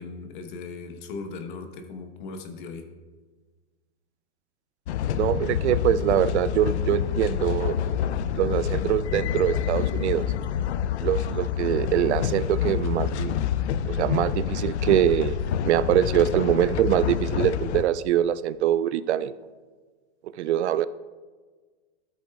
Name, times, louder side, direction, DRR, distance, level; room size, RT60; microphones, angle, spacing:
voice 1, 0.0-2.9, left 4 dB, 45° left, 6 dB, 1.1 m, -38 dB
sound 1, 4.9-17.8, left 9 dB, 80° left, 0.5 m, -27 dB
voice 2, 5.2-7.8 8.3-10.3 11.0-13.3 13.9-15.4 15.6-19.3 20.4-20.9, right 11 dB, 80° right, 16 dB, 0.5 m, -23 dB
13.5 x 8.1 x 2.3 m, 1.4 s
hypercardioid pair, 155°, 33 cm